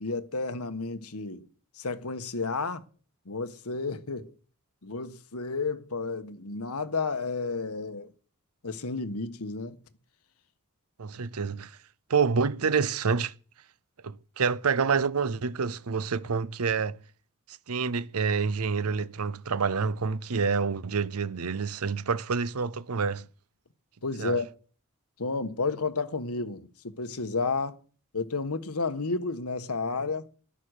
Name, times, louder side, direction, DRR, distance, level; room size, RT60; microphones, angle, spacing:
voice 1, 0.0-1.5 1.8-2.8 3.3-4.3 4.8-8.1 8.6-9.8 24.0-24.5 25.2-27.8 28.1-30.3, left 3 dB, 85° left, 1.4 m, -31 dB
voice 2, 11.0-11.8 12.1-13.3 14.0-17.0 17.5-23.3 24.2-24.4, right 5 dB, 80° right, 0.7 m, -28 dB
14.0 x 11.5 x 6.6 m
head